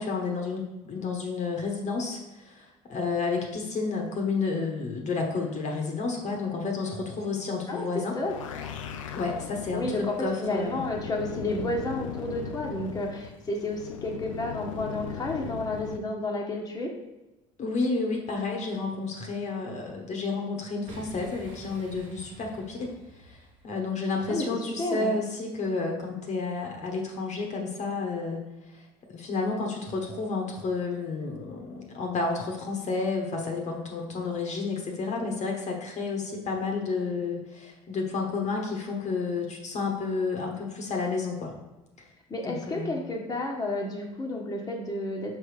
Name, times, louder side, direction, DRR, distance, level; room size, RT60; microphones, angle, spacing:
voice 1, 0.0-8.2 9.1-10.8 17.6-22.9 23.2-28.4 28.7-28.8 29.1-41.5 42.0-42.1 42.4-43.0, left 4 dB, 45° left, 1 dB, 1.2 m, -31 dB
voice 2, 7.7-8.3 9.7-16.9 24.3-24.5 24.8-25.1 42.3-45.4, left 1 dB, 20° left, -1 dB, 1.2 m, -31 dB
sound 1, 8.1-16.0, left 7 dB, 90° left, 0.5 m, -39 dB
Boom, 20.8-23.8, right 2 dB, 85° right, 1.2 m, -47 dB
5.5 x 3.4 x 4.9 m, 1.1 s
hypercardioid pair, 70°, 16 cm